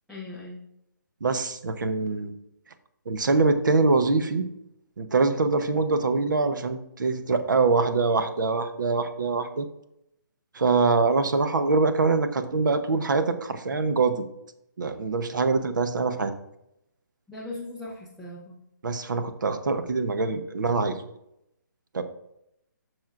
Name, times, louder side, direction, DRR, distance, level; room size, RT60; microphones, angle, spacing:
voice 1, 0.1-0.6 17.3-18.6, left 2 dB, ahead, -9 dB, 0.6 m, -38 dB
voice 2, 1.2-2.3 3.1-4.5 5.0-9.7 10.5-14.2 14.8-16.3 18.8-21.0 21.9-22.0, right 4 dB, 75° right, 9 dB, 1.0 m, -24 dB
10.5 x 6.2 x 2.5 m, 0.82 s
hypercardioid pair, 170°, 11 cm